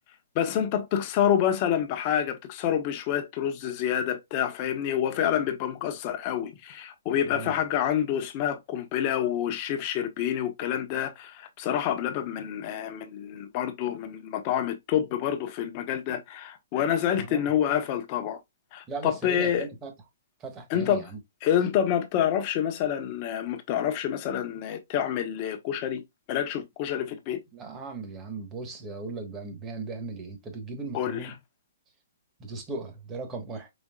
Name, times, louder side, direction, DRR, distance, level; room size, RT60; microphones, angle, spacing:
voice 1, 0.3-18.4 18.7-19.7 20.7-21.1 21.4-26.0 26.3-27.4 30.9-31.3, left 9 dB, 35° left, 1.0 m, -27 dB
voice 2, 17.1-17.5 18.9-19.9 20.4-21.2 27.5-31.4 32.4-33.7, right 3 dB, 20° right, 1.3 m, -37 dB
5.3 x 3.4 x 2.3 m
hypercardioid pair, 150°, 0 cm